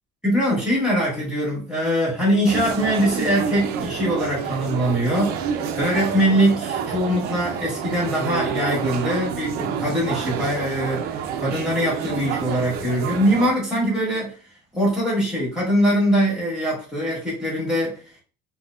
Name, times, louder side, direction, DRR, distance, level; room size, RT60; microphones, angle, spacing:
voice 1, 0.2-14.3 14.7-18.2, equal, 5° right, -7 dB, 1.1 m, -22 dB
sound 1, 2.5-13.5, right 7 dB, 55° right, 0.4 m, -28 dB
4.2 x 2.1 x 2.4 m, 0.38 s
cardioid pair, 170°, 20 cm